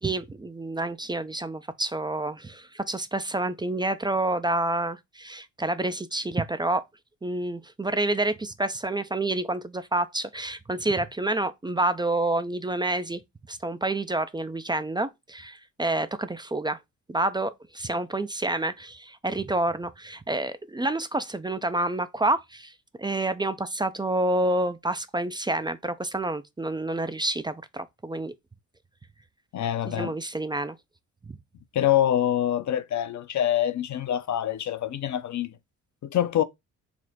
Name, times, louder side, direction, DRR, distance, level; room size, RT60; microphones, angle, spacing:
voice 1, 0.0-6.8 7.2-13.2 13.5-16.8 17.1-22.7 23.0-28.3 29.9-30.8 31.3-31.4, right 2 dB, 10° right, 0.3 m, -28 dB
voice 2, 29.5-30.1 31.7-35.5 36.1-36.4, left 11 dB, 45° left, 0.6 m, -25 dB
4.3 x 2.1 x 4.0 m
hypercardioid pair, 45°, 42 cm